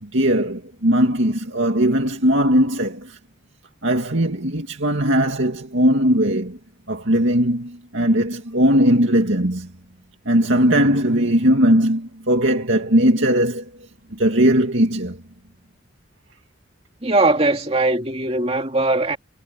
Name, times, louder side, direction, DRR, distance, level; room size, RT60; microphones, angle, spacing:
voice 1, 0.0-3.2 3.8-6.6 6.9-9.7 10.3-13.7 14.1-15.2, equal, 65° right, 2.3 m, -19 dB
voice 2, 17.0-19.2, right 2 dB, 30° right, 2.5 m, -20 dB
head